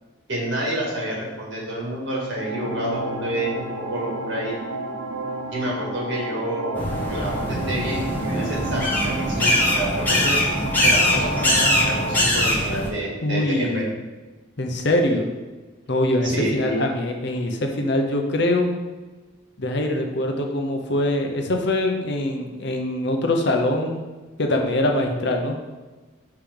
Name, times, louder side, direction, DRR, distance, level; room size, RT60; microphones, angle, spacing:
voice 1, 0.3-4.6 5.5-10.4 10.8-13.8 16.2-16.8, right 1 dB, 60° right, -3 dB, 1.9 m, -28 dB
sound 1, 2.2-12.2, right 2 dB, 75° right, 0.7 m, -31 dB
sound 2, 6.7-12.9, left 1 dB, 10° left, 1.1 m, -22 dB
voice 2, 13.2-13.9 14.6-15.3 15.9-18.7 19.6-24.0 24.4-25.6, left 1 dB, 55° left, 3 dB, 0.7 m, -23 dB
5.8 x 3.4 x 5.2 m, 1.3 s
head